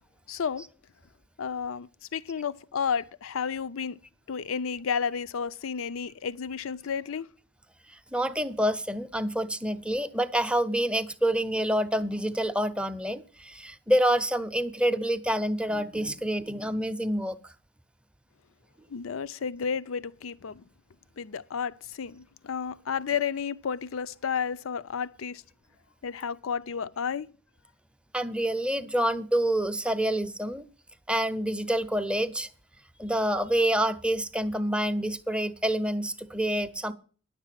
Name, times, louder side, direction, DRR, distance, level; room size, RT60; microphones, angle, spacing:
voice 1, 0.3-0.7 1.4-4.0 4.3-7.3 18.9-20.6 21.2-25.4 26.0-27.3, left 6 dB, 70° left, 0.5 m, -32 dB
voice 2, 7.9-17.5 28.1-30.6 31.1-32.5 33.0-36.9, right 1 dB, 5° right, 0.6 m, -27 dB
10.5 x 7.4 x 7.5 m
head